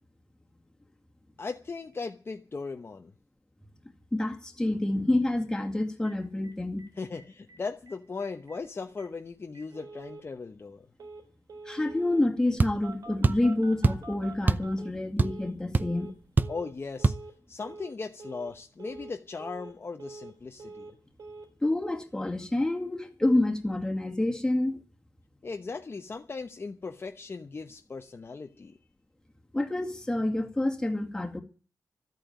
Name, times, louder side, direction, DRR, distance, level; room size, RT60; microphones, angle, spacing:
voice 1, 1.4-3.1 7.0-10.9 16.5-17.2 17.5-20.9 25.4-28.8, left 4 dB, 35° left, 1.0 m, -38 dB
voice 2, 4.1-6.8 11.7-16.2 21.6-24.8 29.5-31.4, left 1 dB, 10° left, 2.3 m, -28 dB
Telephone, 6.0-6.1 6.4-6.5 6.8-6.9 7.1-7.6 7.9-8.0 8.2-8.6 9.0-9.1 9.5-10.2 11.0-11.2 11.5-12.2 12.8-15.5 15.8-16.1 16.4-16.7 17.0-17.3 17.6-17.9 18.2-18.5 18.8-19.1 19.4-20.3 20.6-20.9 21.2-21.4, right 3 dB, 75° right, 3.9 m, -46 dB
sound 1, 12.6-12.8 13.2-13.5 13.8-14.1 14.5-14.7 15.0-15.5 15.7-15.9 16.4-16.6 17.0-17.2, right 3 dB, 30° right, 0.6 m, -24 dB
13.5 x 8.9 x 9.4 m
wide cardioid pair, 130°, 7 cm